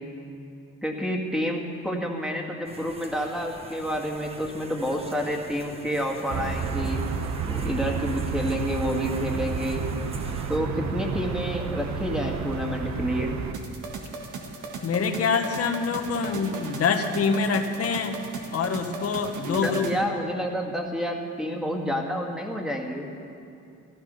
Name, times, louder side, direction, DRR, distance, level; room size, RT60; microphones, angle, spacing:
voice 1, 0.8-7.0 7.5-9.9 10.5-13.3 19.5-23.1, equal, ahead, 0 dB, 2.0 m, -29 dB
sound 1, 2.7-10.6, right 2 dB, 20° right, 1.2 m, -44 dB
sound 2, 6.3-13.5, right 5 dB, 65° right, 1.0 m, -30 dB
sound 3, 13.5-20.0, right 4 dB, 80° right, 1.7 m, -37 dB
voice 2, 14.8-18.2 18.5-19.9, left 5 dB, 50° left, 6 dB, 1.3 m, -25 dB
14.0 x 13.0 x 5.7 m, 2.5 s
cardioid pair, 90°, 30 cm